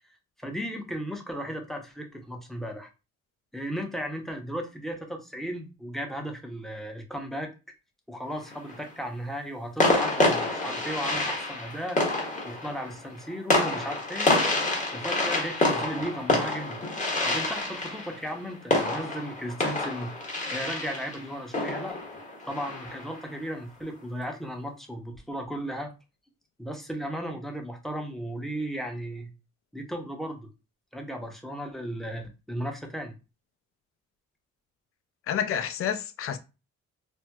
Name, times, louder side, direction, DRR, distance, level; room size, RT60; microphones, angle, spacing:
voice 1, 0.4-2.9 3.5-7.5 8.1-12.0 12.4-14.3 14.9-16.8 17.2-20.1 20.5-22.0 22.5-25.9 26.6-29.3 29.7-30.5 30.9-33.1, equal, ahead, 0.7 m, -35 dB
sound 1, 8.3-8.9 9.8-23.2, left 2 dB, 25° left, 1.1 m, -28 dB
voice 2, 35.3-36.4, left 9 dB, 50° left, 0.5 m, -29 dB
4.3 x 2.0 x 2.2 m
cardioid pair, 90°, 30 cm